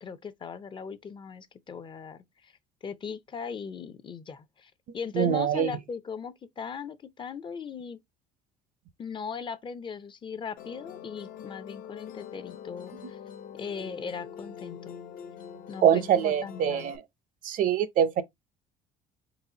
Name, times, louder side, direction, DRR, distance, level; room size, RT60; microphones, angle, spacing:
voice 1, 0.0-2.5 2.8-8.0 9.0-13.2 13.6-15.0 15.7-16.9, left 6 dB, 30° left, 0.5 m, -39 dB
voice 2, 5.1-5.7 15.8-17.0 17.4-18.2, right 9 dB, 60° right, 0.6 m, -24 dB
Musical instrument, 10.6-17.0, left 8 dB, 65° left, 0.7 m, -44 dB
4.0 x 4.0 x 2.8 m
cardioid pair, 115°, 16 cm